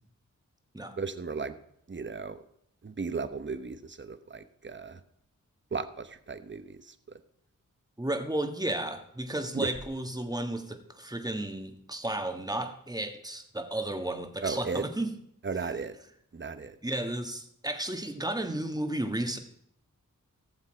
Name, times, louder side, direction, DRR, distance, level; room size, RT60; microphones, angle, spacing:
voice 1, 1.0-1.6 1.9-2.4 2.8-5.0 5.7-6.9 9.5-9.7 14.4-14.8 15.4-15.9 16.3-16.8, right 4 dB, 35° right, 11 dB, 0.9 m, -35 dB
voice 2, 8.0-15.2 15.6-15.7 16.8-19.4, right 1 dB, 10° right, 5 dB, 1.5 m, -33 dB
17.0 x 7.2 x 4.5 m, 0.72 s
wide cardioid pair, 70°, 33 cm